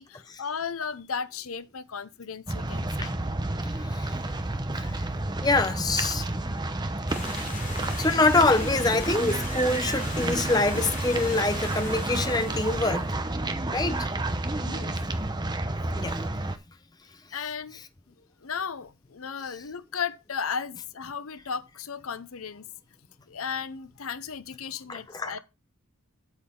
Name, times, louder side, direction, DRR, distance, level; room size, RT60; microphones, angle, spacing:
voice 1, 0.0-3.1 14.6-14.9 17.3-17.8 18.2-22.7 23.3-25.4, left 6 dB, 90° left, 0.8 m, -35 dB
sound 1, 2.5-16.6, right 2 dB, 20° right, 0.8 m, -30 dB
voice 2, 3.8-4.2 4.7-5.0 5.4-6.2 8.0-13.1 13.7-14.1 16.0-16.2 24.9-25.4, left 2 dB, 20° left, 0.7 m, -25 dB
Stream, 7.1-13.2, left 3 dB, 35° left, 4.2 m, -39 dB
8.3 x 7.6 x 3.8 m
head